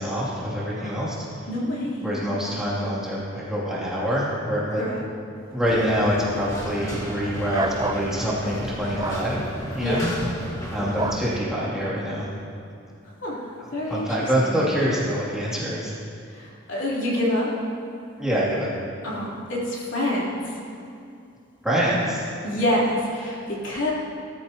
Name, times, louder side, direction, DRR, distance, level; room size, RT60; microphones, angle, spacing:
voice 1, 0.0-1.5 2.0-4.8 5.5-9.4 9.7-10.1 10.7-12.3 13.9-15.9 18.2-18.7 21.6-22.2, equal, 5° right, -9 dB, 2.7 m, -25 dB
voice 2, 1.5-2.1 4.8-5.0 9.8-10.1 13.2-13.4 13.7-14.1 14.4-14.7 16.3-17.5 19.0-20.4 22.4-23.9, left 1 dB, 65° left, -6 dB, 3.6 m, -26 dB
sound 1, 5.6-11.4, equal, 15° left, 1.7 m, -33 dB
sound 2, 7.5-8.1 9.0-9.2 11.0-11.3, right 3 dB, 20° right, 0.4 m, -28 dB
20.5 x 13.5 x 3.0 m, 2.5 s
head